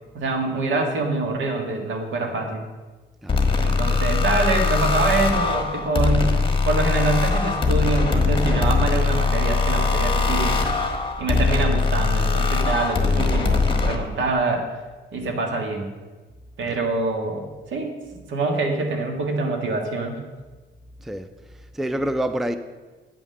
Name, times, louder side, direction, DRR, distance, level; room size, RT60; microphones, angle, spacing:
voice 1, 0.1-2.6 3.6-6.4 6.6-10.6 11.2-14.7 15.1-15.9 16.6-18.0 18.3-20.2, right 3 dB, 70° right, 3 dB, 1.7 m, -25 dB
sound 1, 3.3-14.0, left 4 dB, 25° left, 1.3 m, -21 dB
voice 2, 21.7-22.6, right 1 dB, ahead, 10 dB, 0.4 m, -26 dB
8.6 x 5.4 x 6.7 m, 1.3 s
cardioid pair, 90°, 20 cm